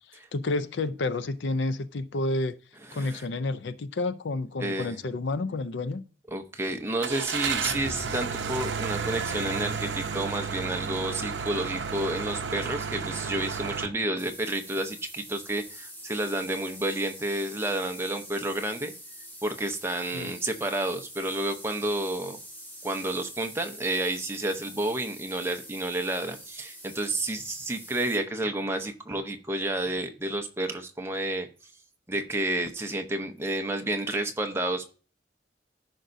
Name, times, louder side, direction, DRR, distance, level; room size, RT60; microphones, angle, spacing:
voice 1, 0.3-2.6 2.9-6.0 20.1-20.3, left 2 dB, 65° left, 0.5 m, -30 dB
voice 2, 2.9-3.3 4.6-5.1 6.3-18.9 19.4-22.4 22.8-31.5 32.1-34.9, right 1 dB, 15° right, 0.8 m, -30 dB
Car / Engine starting, 7.0-13.9, right 5 dB, 65° right, 0.7 m, -32 dB
sound 1, 14.2-28.2, equal, 10° left, 2.3 m, -45 dB
14.0 x 5.2 x 2.6 m
head